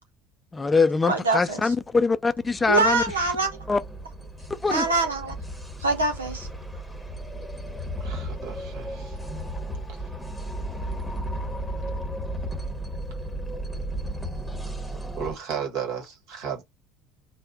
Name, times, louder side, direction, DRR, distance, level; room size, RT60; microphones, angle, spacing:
voice 1, 0.5-3.0 3.7-3.8 4.5-4.8, left 4 dB, 20° left, 0.5 m, -23 dB
voice 2, 1.1-1.7 2.7-3.5 4.7-5.3 5.8-6.5, right 3 dB, 85° right, 0.6 m, -24 dB
sound 1, 1.4-15.4, right 1 dB, ahead, 1.2 m, -34 dB
voice 3, 8.0-9.2 15.2-16.6, right 7 dB, 60° right, 1.6 m, -34 dB
3.4 x 2.1 x 4.1 m
figure-of-eight pair, 65°, 0 cm